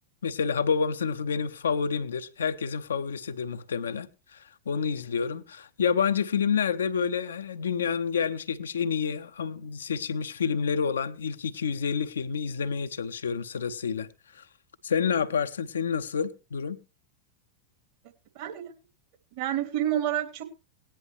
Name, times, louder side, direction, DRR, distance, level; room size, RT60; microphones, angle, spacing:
voice 1, 0.2-14.1 14.3-14.4 14.8-16.8, left 6 dB, 70° left, 0.9 m, -29 dB
voice 2, 18.3-18.7 19.3-20.4, right 11 dB, 45° right, 2.5 m, -29 dB
18.5 x 10.5 x 3.2 m
figure-of-eight pair, 90°, 0 cm